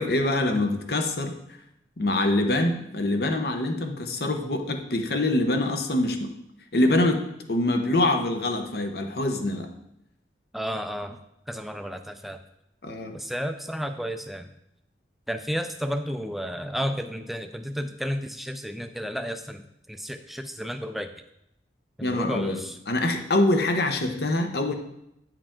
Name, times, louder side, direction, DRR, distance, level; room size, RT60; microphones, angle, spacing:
voice 1, 0.0-1.4 2.0-6.3 6.7-7.2 7.5-9.7 12.8-13.2 22.0-24.7, left 2 dB, 60° left, 5 dB, 0.8 m, -25 dB
voice 2, 10.5-11.2 11.5-12.4 13.1-14.5 15.3-21.1 22.0-22.8, equal, ahead, 7 dB, 0.4 m, -32 dB
8.7 x 4.8 x 3.6 m, 0.82 s
head